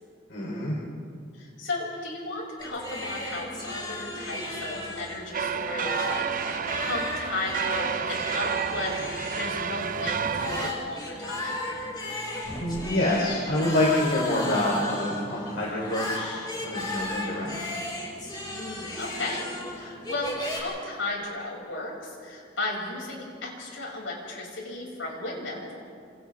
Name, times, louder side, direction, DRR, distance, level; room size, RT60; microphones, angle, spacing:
voice 1, 0.3-0.8 12.6-17.6, left 1 dB, 65° left, -5 dB, 3.6 m, -27 dB
voice 2, 1.3-11.6 18.5-19.4 19.7-25.7, left 2 dB, 85° left, -2 dB, 6.6 m, -35 dB
sound 1, 2.6-20.6, left 1 dB, 25° left, 5.4 m, -35 dB
sound 2, 5.3-10.7, right 6 dB, 45° right, 0.6 m, -30 dB
28.0 x 27.5 x 3.6 m, 2.2 s
head